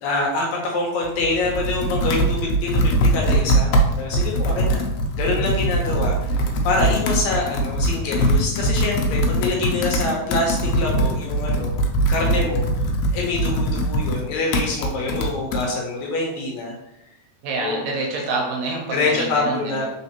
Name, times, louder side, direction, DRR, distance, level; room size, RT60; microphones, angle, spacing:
voice 1, 0.0-3.7 4.0-4.8 5.2-11.7 12.1-12.6 13.1-16.7 17.6-17.8 18.9-19.9, left 2 dB, 75° left, -1 dB, 2.1 m, -25 dB
Computer keyboard, 1.0-15.7, right 1 dB, 90° left, 2.1 m, -22 dB
voice 2, 17.4-19.9, right 3 dB, 75° right, -1 dB, 1.8 m, -27 dB
4.2 x 4.1 x 2.9 m, 0.86 s
omnidirectional pair, 3.4 m